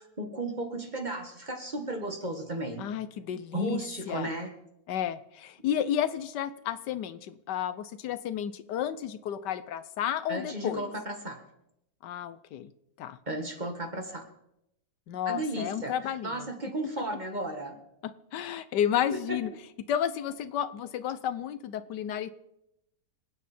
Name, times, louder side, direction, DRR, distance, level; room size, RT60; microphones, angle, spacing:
voice 1, 0.0-2.9 3.5-4.5 10.3-11.4 13.3-14.3 15.3-15.9 16.2-17.8 19.1-19.4, right 1 dB, 25° right, 5 dB, 1.7 m, -34 dB
voice 2, 2.8-4.3 4.9-10.9 12.0-12.7 13.0-13.2 15.1-16.5 18.3-19.5 19.9-22.3, left 9 dB, 80° left, 14 dB, 1.4 m, -32 dB
26.0 x 9.4 x 4.3 m, 0.82 s
omnidirectional pair, 1.8 m